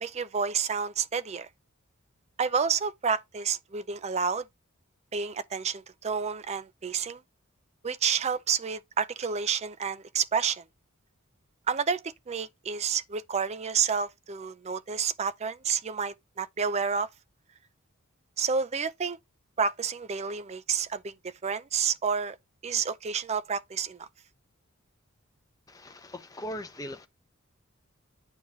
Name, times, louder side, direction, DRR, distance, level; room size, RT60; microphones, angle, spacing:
voice 1, 0.0-1.5 2.4-4.4 5.1-7.2 7.8-10.6 11.7-17.1 18.4-19.2 19.6-21.1 21.4-22.4 22.6-24.1, right 6 dB, 30° right, 0.4 m, -29 dB
voice 2, 25.7-27.1, left 1 dB, 15° left, 0.8 m, -39 dB
9.6 x 4.5 x 3.0 m
head